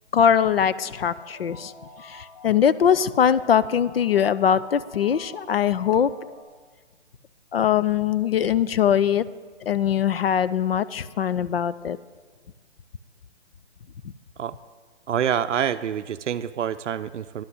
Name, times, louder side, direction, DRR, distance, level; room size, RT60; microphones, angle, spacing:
voice 1, 0.1-1.7 2.0-6.1 7.5-9.2 9.7-12.0, left 8 dB, 55° left, 16 dB, 0.4 m, -21 dB
sound 1, 0.9-6.4, left 2 dB, 30° left, 1.3 m, -47 dB
voice 2, 15.1-17.4, right 9 dB, 90° right, 11 dB, 0.5 m, -26 dB
10.5 x 5.9 x 7.9 m, 1.4 s
hypercardioid pair, 165°, 35 cm